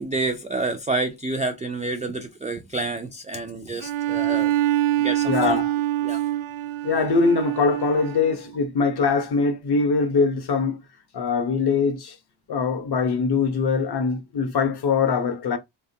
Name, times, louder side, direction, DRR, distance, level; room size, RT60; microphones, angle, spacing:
voice 1, 0.0-4.5 5.0-5.6 6.0-6.2, right 2 dB, 15° right, 0.3 m, -28 dB
Bowed string instrument, 3.8-8.5, right 14 dB, 80° right, 0.6 m, -25 dB
voice 2, 5.2-5.7 6.8-10.8 11.1-12.1 12.5-15.6, left 4 dB, 50° left, 1.0 m, -22 dB
4.3 x 3.4 x 2.7 m
wide cardioid pair, 170°, 49 cm